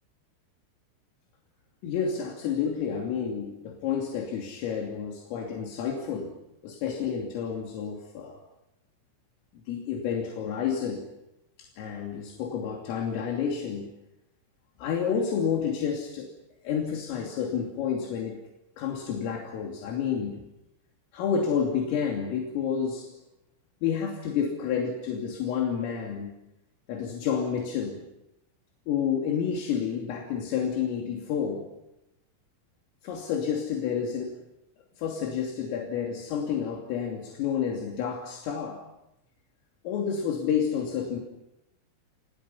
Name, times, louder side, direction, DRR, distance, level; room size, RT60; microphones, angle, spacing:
voice 1, 1.8-6.4 6.6-8.4 9.7-11.1 11.6-13.9 14.8-16.3 16.6-18.4 18.8-20.4 21.1-23.1 23.8-26.3 26.9-28.0 28.9-31.7 33.0-34.4 35.0-38.8 39.9-41.2, left 7 dB, 80° left, 0 dB, 5.4 m, -30 dB
29.5 x 29.0 x 5.7 m, 0.90 s
omnidirectional pair, 5.9 m